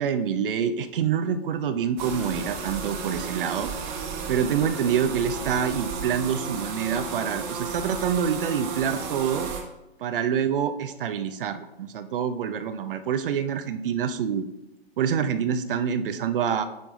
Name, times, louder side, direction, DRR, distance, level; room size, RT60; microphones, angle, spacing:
voice 1, 0.0-3.7 4.3-9.5 10.0-14.5 15.0-16.6, right 7 dB, 60° right, 10 dB, 0.7 m, -26 dB
sound 1, 2.0-9.6, right 5 dB, 35° right, 1.3 m, -33 dB
9.2 x 3.5 x 4.0 m, 0.91 s
figure-of-eight pair, 115°, 31 cm